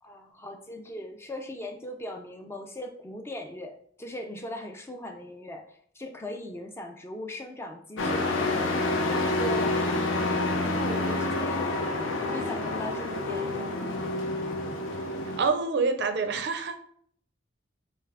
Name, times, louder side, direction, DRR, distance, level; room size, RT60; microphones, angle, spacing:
voice 1, 0.0-11.6 12.1-13.8, left 1 dB, 15° left, 4 dB, 0.4 m, -39 dB
Truck, 8.0-15.4, left 2 dB, 90° left, 0.6 m, -28 dB
voice 2, 15.4-16.8, right 4 dB, 60° right, 9 dB, 0.4 m, -26 dB
3.5 x 3.2 x 3.4 m, 0.63 s
head